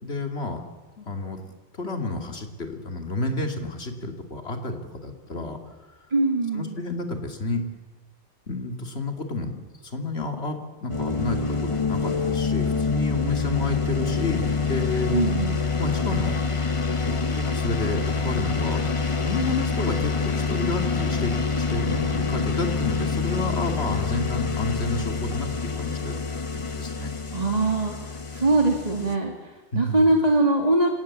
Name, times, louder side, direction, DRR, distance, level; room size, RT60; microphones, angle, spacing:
voice 1, 0.0-0.6 1.0-1.5 1.8-5.6 6.5-7.6 8.5-15.3 15.8-16.4 17.1-18.9 19.2-26.2 26.5-27.1 29.7-30.0, left 2 dB, 60° left, 4 dB, 2.9 m, -30 dB
voice 2, 6.1-6.8 15.1-15.6 27.3-30.9, right 2 dB, 35° right, 2 dB, 2.1 m, -22 dB
sound 1, 10.9-29.2, left 5 dB, 30° left, 1.2 m, -26 dB
27.0 x 18.5 x 7.4 m, 1.3 s
omnidirectional pair, 1.2 m